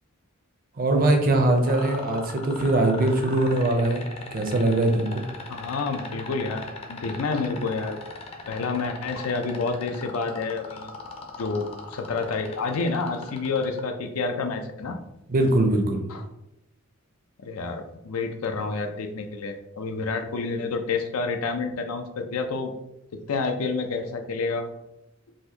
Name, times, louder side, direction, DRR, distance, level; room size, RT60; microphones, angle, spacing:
voice 1, 0.8-4.1 4.3-5.2 15.3-16.1, right 2 dB, 40° right, 4 dB, 0.5 m, -22 dB
sound 1, 1.7-13.8 15.5-15.6, left 4 dB, 30° left, 0.5 m, -38 dB
voice 2, 5.5-6.6 6.9-8.0 8.5-10.9 11.4-15.0 16.1-16.2 17.4-22.7 23.1-24.7, left 4 dB, 85° left, 5 dB, 0.5 m, -29 dB
4.1 x 2.5 x 2.8 m, 0.87 s
head